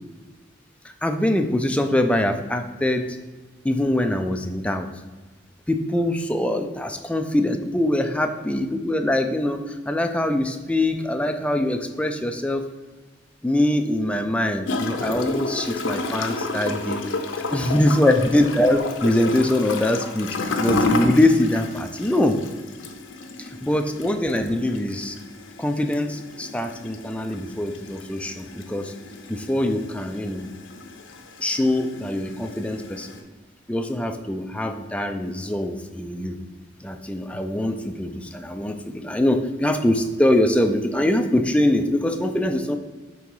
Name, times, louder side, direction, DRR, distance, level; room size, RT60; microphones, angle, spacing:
voice 1, 0.8-3.2 3.6-4.9 5.7-12.6 13.4-17.0 17.5-22.4 23.4-25.2 25.6-28.9 29.3-30.5 31.4-33.1 33.7-36.4 36.8-42.8, left 1 dB, 5° left, 6 dB, 0.3 m, -23 dB
Gurgling / Toilet flush, 14.7-33.2, left 2 dB, 80° left, 0.6 m, -31 dB
5.4 x 3.7 x 4.6 m, 1.2 s
head